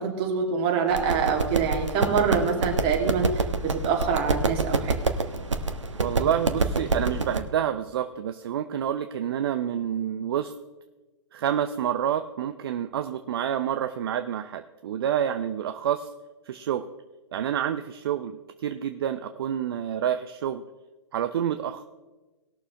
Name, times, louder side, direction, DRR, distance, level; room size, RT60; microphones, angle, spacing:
voice 1, 0.0-5.0, right 6 dB, 30° right, 1 dB, 2.6 m, -25 dB
sound 1, 0.9-7.4, right 3 dB, 80° right, 1.2 m, -27 dB
voice 2, 6.0-10.5 11.3-16.1 16.5-16.9 17.3-20.6 21.1-21.8, right 9 dB, 55° right, 9 dB, 0.7 m, -28 dB
20.0 x 6.9 x 3.4 m, 1.2 s
figure-of-eight pair, 125°, 15 cm